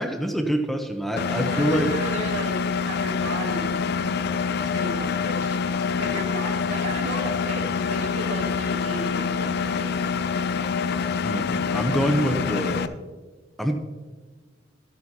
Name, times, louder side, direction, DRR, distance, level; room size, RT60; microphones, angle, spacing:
voice 1, 0.0-1.9 11.2-13.0 13.6-13.7, equal, ahead, 4 dB, 0.6 m, -25 dB
Engine, 1.2-12.9, left 5 dB, 60° left, 0.4 m, -26 dB
voice 2, 1.5-3.8 4.7-10.1, right 1 dB, 75° right, -2 dB, 2.3 m, -35 dB
13.5 x 9.0 x 2.8 m, 1.3 s
head